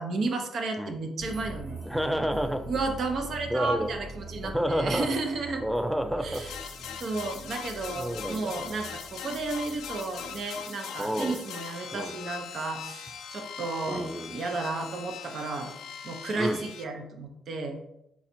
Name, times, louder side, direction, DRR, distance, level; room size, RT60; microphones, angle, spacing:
voice 1, 0.0-1.8 2.7-5.6 6.2-6.5 7.0-15.7 16.0-17.7, right 3 dB, 60° right, 4 dB, 0.7 m, -33 dB
sound 1, 1.2-10.5, right 2 dB, 40° right, 1.1 m, -44 dB
voice 2, 1.9-2.6 3.5-3.9 4.4-5.1 5.6-6.4 8.0-8.7 11.0-11.4 11.9-12.1 13.9-14.4 16.4-16.6, equal, 5° right, 8 dB, 0.4 m, -29 dB
sound 2, 6.3-16.8, left 7 dB, 80° left, 0.4 m, -41 dB
4.1 x 2.4 x 4.3 m, 0.84 s
cardioid pair, 90°, 0 cm